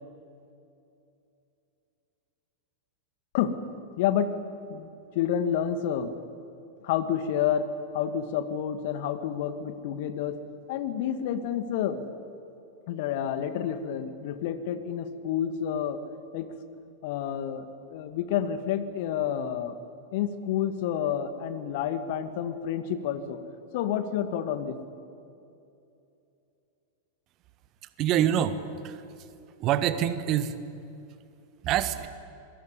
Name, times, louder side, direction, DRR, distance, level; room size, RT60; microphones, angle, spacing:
voice 1, 4.0-4.3 4.7-4.9 5.2-6.1 6.8-7.7 7.9-10.4 10.7-12.0 12.9-16.0 16.3-16.5 17.0-19.8 20.1-23.4 23.7-24.8, left 9 dB, 50° left, 10 dB, 1.9 m, -29 dB
voice 2, 28.0-28.6 28.8-29.1 29.6-30.6 31.6-32.1, right 10 dB, 35° right, 13 dB, 1.5 m, -25 dB
26.5 x 22.5 x 9.8 m, 2.7 s
figure-of-eight pair, 90°, 0 cm